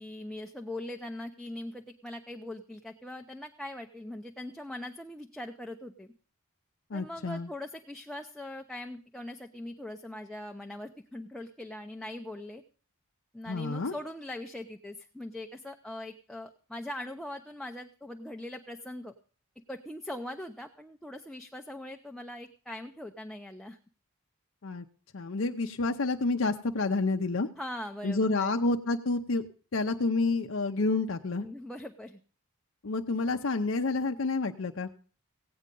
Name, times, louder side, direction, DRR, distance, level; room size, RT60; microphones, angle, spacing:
voice 1, 0.0-6.1 6.9-12.6 13.3-19.1 19.7-23.8 27.6-28.5 31.4-32.2, left 1 dB, ahead, 3 dB, 0.6 m, -41 dB
voice 2, 6.9-7.5 13.5-13.9 24.6-24.9 25.1-27.5 28.0-29.4 29.7-31.5 32.8-34.9, left 3 dB, 60° left, 5 dB, 0.6 m, -29 dB
16.5 x 8.7 x 5.3 m, 0.41 s
head